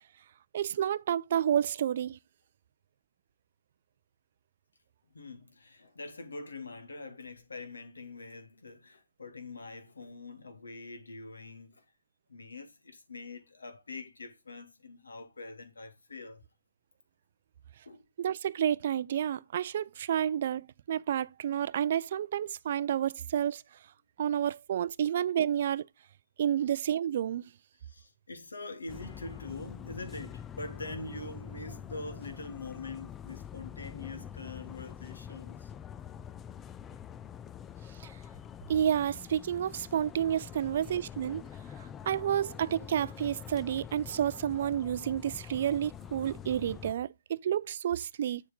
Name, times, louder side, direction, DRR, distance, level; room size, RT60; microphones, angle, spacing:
voice 1, 0.5-2.2 18.2-23.6 24.2-25.9 26.4-27.4 38.7-41.4 42.1-48.4, right 10 dB, 50° right, 0.5 m, -30 dB
voice 2, 5.1-11.8 12.3-16.4 17.9-18.1 27.8-35.7, left 3 dB, 75° left, 2.3 m, -44 dB
sound 1, 28.9-46.9, left 8 dB, 15° left, 0.4 m, -45 dB
8.7 x 7.1 x 3.8 m
figure-of-eight pair, 140°, 0 cm